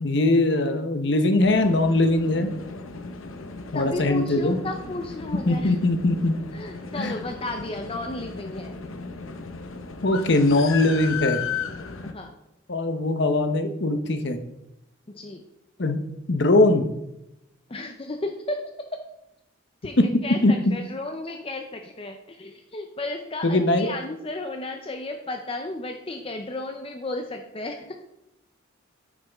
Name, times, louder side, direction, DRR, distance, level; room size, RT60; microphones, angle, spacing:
voice 1, 0.0-2.5 3.7-4.6 5.5-6.4 7.0-7.1 10.0-11.4 12.7-14.4 15.8-16.0 16.3-16.9 20.0-20.1 20.4-20.7 23.4-23.9, left 2 dB, 55° left, 7 dB, 0.9 m, -21 dB
sound 1, 1.4-12.1, left 5 dB, 85° left, 0.8 m, -36 dB
voice 2, 3.7-5.7 6.5-8.7 12.0-12.4 15.1-15.4 17.7-18.6 19.8-20.0 20.2-28.0, left 2 dB, 25° left, 5 dB, 0.5 m, -33 dB
9.2 x 7.2 x 3.5 m, 0.86 s
head